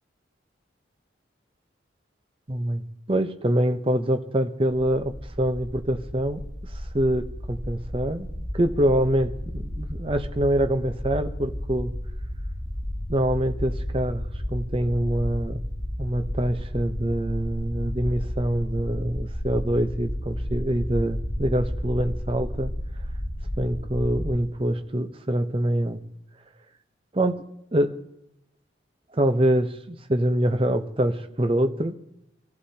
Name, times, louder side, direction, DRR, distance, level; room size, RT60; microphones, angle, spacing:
voice 1, 2.5-2.8 3.1-6.4 6.9-11.9 13.1-14.2 14.5-15.6 16.0-22.7 23.6-26.0 27.1-27.4 27.7-28.0 29.1-31.9, right 1 dB, 30° right, 8 dB, 0.8 m, -25 dB
sound 1, 5.0-24.4, equal, 25° left, 3.6 m, -32 dB
25.0 x 15.0 x 2.8 m, 0.83 s
head